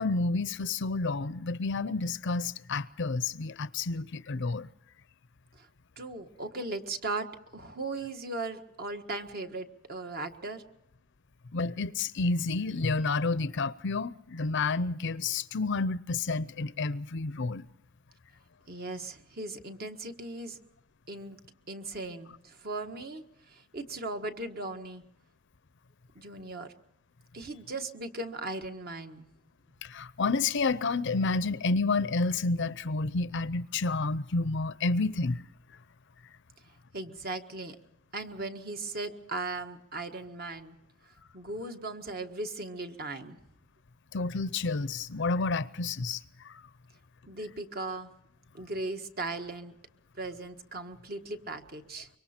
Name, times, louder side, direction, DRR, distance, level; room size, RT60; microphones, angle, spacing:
voice 1, 0.0-4.7 11.5-17.7 29.8-35.4 44.1-46.5, left 3 dB, 65° left, 0.7 m, -30 dB
voice 2, 6.0-7.3 7.5-10.6 18.7-20.6 21.1-21.4 21.7-25.0 26.1-26.7 27.3-29.2 36.9-37.7 38.1-40.8 41.3-43.4 47.3-48.1 48.5-49.7 50.2-52.1, right 2 dB, 50° right, 1.6 m, -38 dB
25.0 x 23.5 x 4.4 m
head